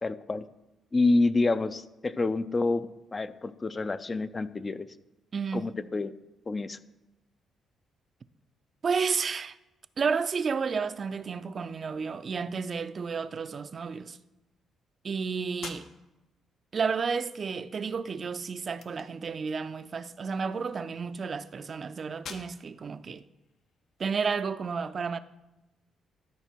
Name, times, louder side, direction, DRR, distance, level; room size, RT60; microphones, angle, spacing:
voice 1, 0.0-0.4 0.9-4.9 5.5-6.1 6.5-6.8, left 3 dB, 30° left, 0.4 m, -28 dB
voice 2, 5.3-5.7 8.8-9.5 10.0-14.2 15.0-15.9 16.7-23.2 24.0-25.2, right 5 dB, 45° right, 0.4 m, -31 dB
sound 1, 15.6-24.5, left 6 dB, 65° left, 0.8 m, -51 dB
12.5 x 4.9 x 4.5 m
cardioid pair, 90°, 0 cm